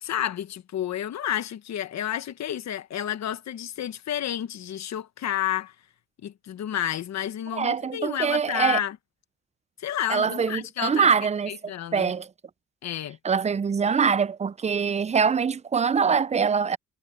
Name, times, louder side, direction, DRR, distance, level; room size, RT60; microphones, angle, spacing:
voice 1, 0.0-5.7 6.2-9.0 9.8-11.1 11.5-12.1 12.8-13.2, left 11 dB, 60° left, 1.3 m, -30 dB
voice 2, 7.5-8.8 10.1-11.5 11.9-12.3 13.2-16.8, right 6 dB, 20° right, 0.5 m, -23 dB
cardioid pair, 90°, 30 cm